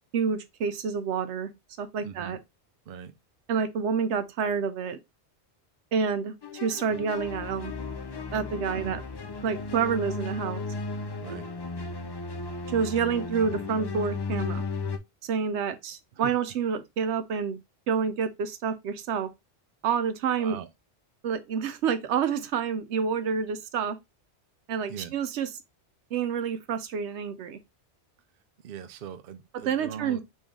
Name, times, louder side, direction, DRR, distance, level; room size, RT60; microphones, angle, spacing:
voice 1, 0.1-1.5 1.8-2.4 3.5-5.0 5.9-7.7 8.3-9.0 9.4-10.6 12.7-14.6 15.2-17.6 17.9-19.3 19.8-20.6 21.2-24.0 24.7-25.5 26.1-27.6 29.7-30.2, right 6 dB, 85° right, 0.9 m, -28 dB
voice 2, 2.0-2.4 2.9-3.1 6.9-7.0 8.7-9.0 11.2-11.5 16.1-16.4 20.4-20.7 24.9-25.1 28.6-30.2, right 8 dB, 60° right, 0.7 m, -40 dB
sound 1, 6.4-15.0, left 3 dB, 45° left, 0.3 m, -35 dB
4.3 x 3.2 x 3.5 m
omnidirectional pair, 1.1 m